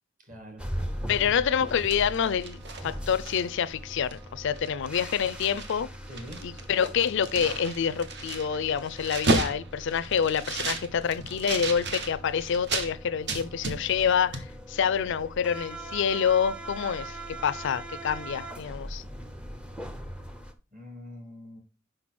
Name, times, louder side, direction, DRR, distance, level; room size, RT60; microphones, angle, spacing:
voice 1, 0.2-0.6 1.2-1.4 6.1-6.4 18.3-18.5 20.7-21.6, equal, 40° right, 2.2 m, -44 dB
sound 1, 0.6-20.5, right 1 dB, 5° right, 0.6 m, -41 dB
voice 2, 1.1-5.9 6.4-19.0, left 7 dB, 60° left, 0.4 m, -27 dB
sound 2, 1.6-3.7 4.1-4.3 4.5-5.8 6.1-12.9 13.3-14.1 14.3-14.5, right 3 dB, 55° right, 1.1 m, -33 dB
6.0 x 5.1 x 4.2 m
head